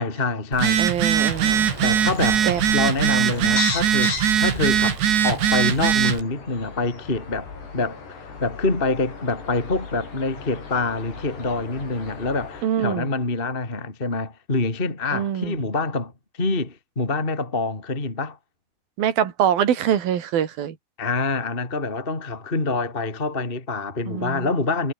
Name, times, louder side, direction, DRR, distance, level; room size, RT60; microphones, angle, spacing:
voice 1, 0.0-1.0 1.8-2.5 2.7-16.1 16.4-18.4 21.0-24.9, left 3 dB, 15° left, 3.1 m, -26 dB
Telephone, 0.5-6.2, right 9 dB, 80° right, 5.2 m, -21 dB
voice 2, 0.8-1.7 2.4-2.6 12.6-13.1 15.1-15.6 19.0-20.8 24.1-24.5, right 9 dB, 60° right, 3.9 m, -24 dB
sound 1, 1.1-12.6, left 5 dB, 70° left, 9.2 m, -36 dB
omnidirectional pair, 5.0 m